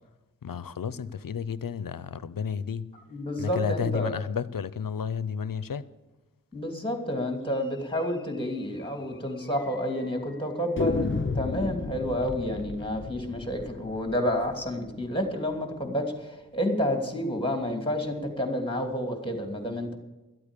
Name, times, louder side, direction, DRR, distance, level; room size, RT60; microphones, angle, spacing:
voice 1, 0.4-2.9 3.4-5.8, left 7 dB, 90° left, 0.6 m, -31 dB
voice 2, 3.1-4.1 6.5-20.0, equal, 15° left, 2.8 m, -30 dB
sound 1, 7.9-8.1 8.4-8.5 8.8-8.9 9.5-10.1 10.8-15.6, left 4 dB, 35° left, 0.7 m, -34 dB
13.0 x 8.6 x 8.3 m
wide cardioid pair, 55°, 33 cm